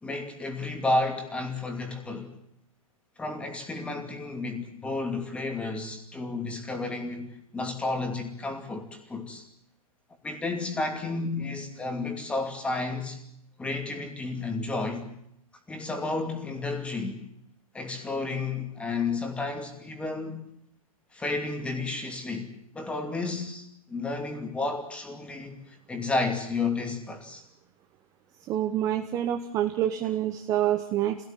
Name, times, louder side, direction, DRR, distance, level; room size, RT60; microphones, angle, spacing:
voice 1, 0.0-2.3 3.2-9.4 10.2-13.2 13.6-15.1 15.7-17.2 17.7-20.5 21.1-27.4, left 3 dB, 5° left, 2.6 m, -32 dB
voice 2, 28.5-31.2, right 11 dB, 20° right, 1.0 m, -27 dB
26.0 x 17.5 x 9.2 m
hypercardioid pair, 165°, 18 cm